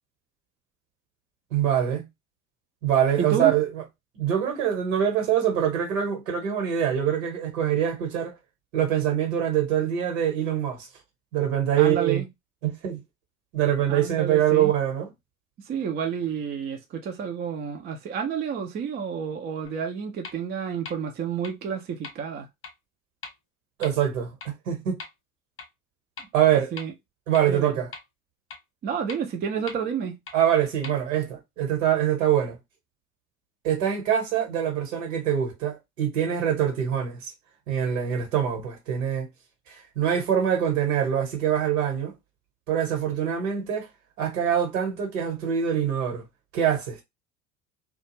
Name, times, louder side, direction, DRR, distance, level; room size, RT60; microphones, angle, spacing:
voice 1, 1.5-2.1 2.8-3.7 4.1-8.4 8.7-10.9 11.3-12.2 12.6-13.0 13.5-15.1 23.8-25.0 26.3-26.7 27.3-27.9 30.3-32.6 33.6-37.3 37.7-39.3 39.7-42.1 42.7-43.9 44.2-46.2 46.5-47.0, right 9 dB, 65° right, 1.2 m, -24 dB
voice 2, 3.2-3.5 11.8-12.3 13.9-14.7 15.7-22.5 26.7-26.9 27.5-27.8 28.8-30.2, right 7 dB, 25° right, 0.5 m, -30 dB
sound 1, 19.6-19.7 20.2-20.3 20.9-21.0 21.4-21.5 22.0-22.1 22.6-22.7 23.2-23.3 23.8-23.9 24.4-24.5 25.0-25.1 25.6-25.7 26.2-26.3 26.8-26.9 27.3-27.4 27.9-28.0 28.5-28.6 29.1-29.2 29.7-29.8 30.3-30.4 30.8-30.9, left 4 dB, 30° left, 1.0 m, -39 dB
2.4 x 2.3 x 2.9 m
figure-of-eight pair, 70°, 41 cm